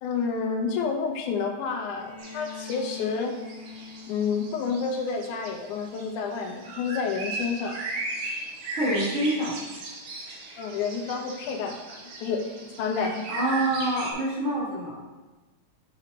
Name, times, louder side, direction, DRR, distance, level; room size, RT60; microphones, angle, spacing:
voice 1, 0.0-3.3 4.1-7.8 10.6-12.4 12.8-13.3, left 5 dB, 85° left, 3 dB, 2.3 m, -29 dB
Bowed string instrument, 1.9-5.8, left 6 dB, 65° left, 1.6 m, -44 dB
sound 1, 2.2-14.1, right 2 dB, 85° right, 2.7 m, -38 dB
voice 2, 8.7-9.6 13.3-15.0, right 1 dB, 30° right, -7 dB, 1.7 m, -26 dB
7.2 x 5.4 x 4.0 m, 1.2 s
omnidirectional pair, 3.4 m